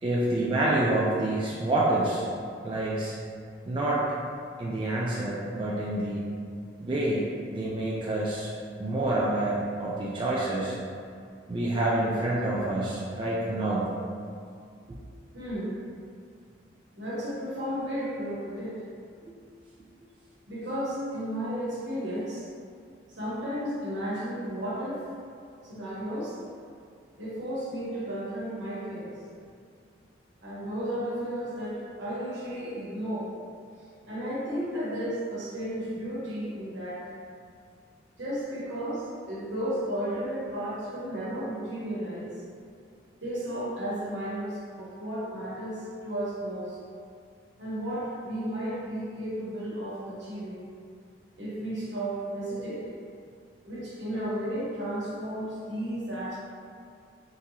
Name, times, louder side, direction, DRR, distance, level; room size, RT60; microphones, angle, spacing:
voice 1, 0.0-2.3 2.6-3.2 3.7-4.0 4.6-6.2 6.8-8.5 8.8-10.7 11.5-13.9 19.3-19.4, right 1 dB, 25° right, -6 dB, 0.3 m, -27 dB
voice 2, 15.3-15.8 16.9-18.8 20.5-22.5 23.1-25.1 25.6-26.4 27.2-29.2 30.4-33.3 34.1-37.1 38.2-42.4 43.2-46.8 47.6-50.7 51.4-52.9 53.6-56.4, equal, 75° right, -8 dB, 1.2 m, -33 dB
3.7 x 2.9 x 2.8 m, 2.3 s
head